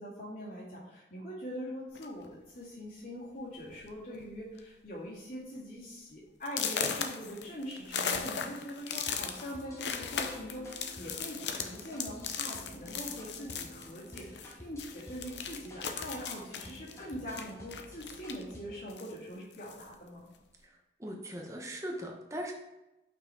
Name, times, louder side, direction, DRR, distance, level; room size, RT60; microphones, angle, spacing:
voice 1, 0.0-20.2, equal, 55° left, -12 dB, 2.0 m, -43 dB
sound 1, 1.9-2.3 3.1-3.2 3.6-3.8 4.1-4.6 5.0-5.1 5.6-5.7 6.5-14.5 14.8-18.5 18.9-19.9, left 6 dB, 80° left, 0.7 m, -37 dB
sound 2, 8.9-18.9, left 1 dB, 15° left, 1.0 m, -51 dB
voice 2, 20.6-22.5, equal, 20° right, 1 dB, 1.0 m, -40 dB
5.8 x 4.6 x 4.5 m, 0.95 s
head